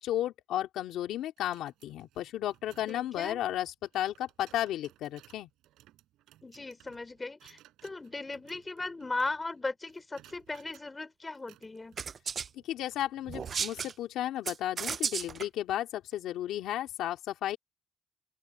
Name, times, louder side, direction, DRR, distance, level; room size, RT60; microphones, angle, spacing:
voice 1, 0.0-5.5 12.5-17.6, left 12 dB, 85° left, 2.8 m, -34 dB
sound 1, 1.4-9.6 9.9-10.9 11.3-14.0, right 14 dB, 90° right, 7.8 m, -59 dB
voice 2, 2.9-3.4 6.4-12.0, left 3 dB, 20° left, 3.7 m, -37 dB
sound 2, 12.0-12.5 13.3-13.9 14.5-15.5, right 6 dB, 45° right, 0.4 m, -34 dB
open air
cardioid pair, 90°, 0 cm